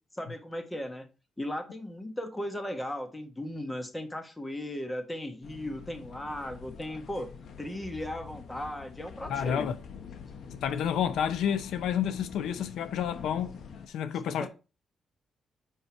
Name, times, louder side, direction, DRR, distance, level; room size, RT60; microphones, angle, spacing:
voice 1, 0.1-1.0 1.4-7.3 7.6-9.7 14.4-14.5, left 1 dB, 15° left, 1.4 m, -36 dB
sound 1, 5.4-13.9, left 6 dB, 70° left, 0.9 m, -46 dB
voice 2, 9.3-9.8 10.6-13.6 13.9-14.5, left 8 dB, 90° left, 0.6 m, -30 dB
5.6 x 5.5 x 4.4 m
cardioid pair, 100°, 0 cm